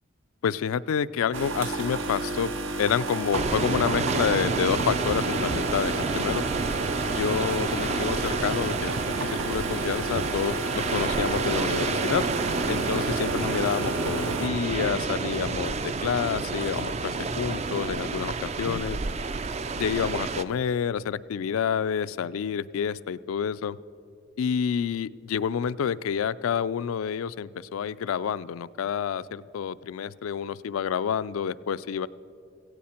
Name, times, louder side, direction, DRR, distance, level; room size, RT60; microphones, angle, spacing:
voice 1, 0.4-2.5 2.8-6.4 7.1-12.2 12.7-19.0 19.8-23.8 24.4-32.1, left 7 dB, 90° left, 17 dB, 0.3 m, -28 dB
sound 1, 1.3-14.5, right 3 dB, 75° right, 0.9 m, -32 dB
sound 2, 3.3-20.4, right 4 dB, 30° right, 0.4 m, -29 dB
17.0 x 16.0 x 4.4 m, 2.5 s
head